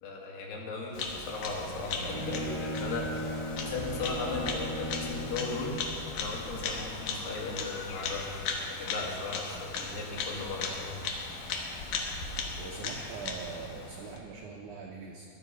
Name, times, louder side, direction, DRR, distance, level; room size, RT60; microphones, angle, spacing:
voice 1, 0.0-3.2 3.5-5.8 6.1-8.2 8.8-10.9, left 3 dB, 85° left, -1 dB, 4.1 m, -37 dB
Bird vocalization bird call bird song, 0.9-14.2, left 4 dB, 65° left, 2.4 m, -37 dB
Bowed string instrument, 1.6-5.7, equal, 20° right, 4.3 m, -37 dB
voice 2, 12.6-15.3, right 5 dB, 80° right, 0 dB, 1.7 m, -42 dB
21.0 x 7.5 x 6.1 m, 2.7 s
omnidirectional pair, 4.6 m